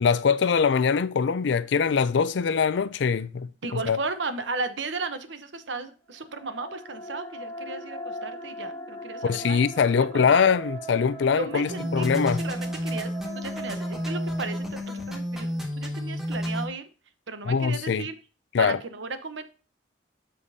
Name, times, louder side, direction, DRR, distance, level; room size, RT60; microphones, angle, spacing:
voice 1, 0.0-3.5 3.9-4.0 9.2-12.4 17.5-18.1 18.5-18.8, left 6 dB, 65° left, 0.4 m, -23 dB
voice 2, 3.6-9.6 10.1-10.5 11.4-16.9 17.3-18.1 18.6-19.4, right 3 dB, 70° right, 0.9 m, -35 dB
sound 1, 6.2-15.4, right 1 dB, 20° left, 1.8 m, -40 dB
sound 2, 11.7-16.7, equal, ahead, 1.5 m, -31 dB
8.1 x 6.9 x 2.8 m
head